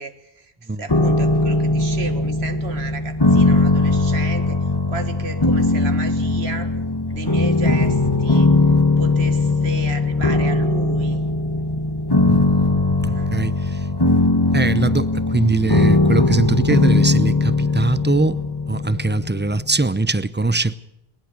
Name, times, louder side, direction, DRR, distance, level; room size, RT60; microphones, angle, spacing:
voice 1, 0.0-0.5 0.8-6.8 7.1-8.6 9.0-11.3 13.1-13.3, right 3 dB, 80° right, 1.9 m, -34 dB
sound 1, 0.9-19.9, left 2 dB, 25° left, 1.2 m, -19 dB
voice 2, 12.2-13.9 14.5-18.4 18.7-20.7, right 3 dB, 15° right, 0.5 m, -22 dB
20.0 x 20.0 x 6.6 m
omnidirectional pair, 1.1 m